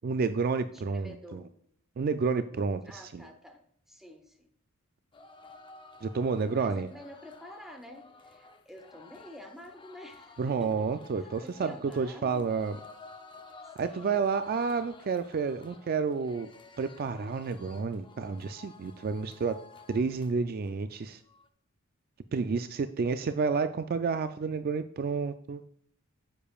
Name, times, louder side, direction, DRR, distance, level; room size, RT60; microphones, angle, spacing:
voice 1, 0.0-1.4 2.0-3.3 6.0-6.9 10.4-12.8 13.8-16.5 16.8-19.6 19.9-21.2 22.3-25.6, right 5 dB, 45° right, 10 dB, 0.3 m, -30 dB
voice 2, 0.7-1.5 2.8-4.5 6.5-10.9 11.2-12.5 13.8-14.2, left 1 dB, ahead, 5 dB, 1.0 m, -48 dB
sound 1, 5.1-20.3 20.6-20.7 21.0-21.5, left 3 dB, 25° left, 0.6 m, -53 dB
10.0 x 6.8 x 2.4 m, 0.68 s
head